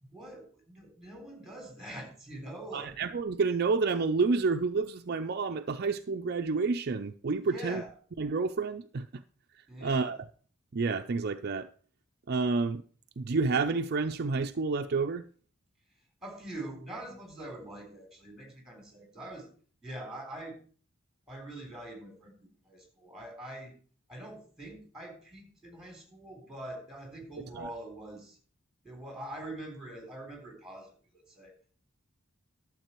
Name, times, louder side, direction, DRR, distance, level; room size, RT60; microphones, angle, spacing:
voice 1, 0.0-2.9 7.5-7.9 9.7-10.1 16.2-19.5 19.8-20.6 21.3-23.7 24.1-28.4 28.8-31.5, right 1 dB, ahead, 3.7 m, -44 dB
voice 2, 2.7-7.8 8.2-9.2 9.5-10.2 10.7-11.7 12.3-12.8 13.2-15.2 27.5-27.7, right 4 dB, 50° right, 0.5 m, -29 dB
12.0 x 7.6 x 4.5 m
head